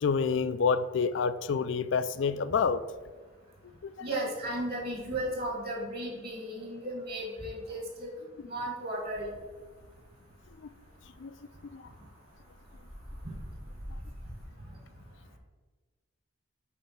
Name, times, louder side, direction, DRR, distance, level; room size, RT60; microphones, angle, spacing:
voice 1, 0.0-2.8 3.8-3.9 11.2-11.3 11.7-11.8, left 5 dB, 65° left, 14 dB, 0.4 m, -28 dB
voice 2, 4.0-8.1 8.5-9.3, right 1 dB, 45° right, 0 dB, 1.8 m, -35 dB
sound 1, 9.0-14.5, equal, 85° right, 2.5 m, -48 dB
8.4 x 3.3 x 5.9 m, 1.4 s
head